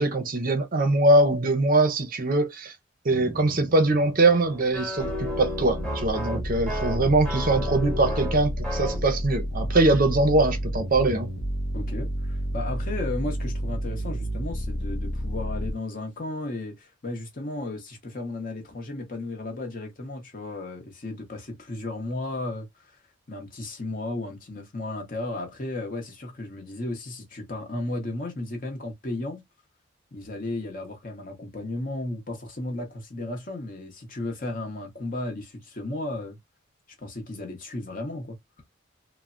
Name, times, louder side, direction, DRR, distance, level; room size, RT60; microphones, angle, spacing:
voice 1, 0.0-2.7 3.0-11.3, right 2 dB, 40° right, 0.6 m, -22 dB
sound 1, 3.1-9.1, equal, 5° left, 1.0 m, -34 dB
sound 2, 5.0-15.7, equal, 80° left, 0.7 m, -30 dB
voice 2, 11.7-23.0 23.3-29.4 30.1-36.4 37.0-38.4, left 2 dB, 40° left, 0.8 m, -34 dB
3.2 x 2.0 x 2.5 m
head